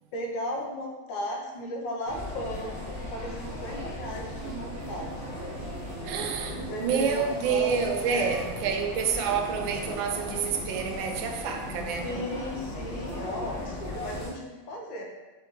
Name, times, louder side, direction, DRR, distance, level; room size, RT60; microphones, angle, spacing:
voice 1, 0.1-5.8 6.7-8.4 12.0-15.0, left 1 dB, 80° left, 0 dB, 1.4 m, -36 dB
sound 1, 2.0-14.3, left 1 dB, 20° right, 0.4 m, -37 dB
voice 2, 6.0-12.2, right 6 dB, 85° right, 4 dB, 1.3 m, -28 dB
4.1 x 3.6 x 3.0 m, 1.2 s
omnidirectional pair, 2.1 m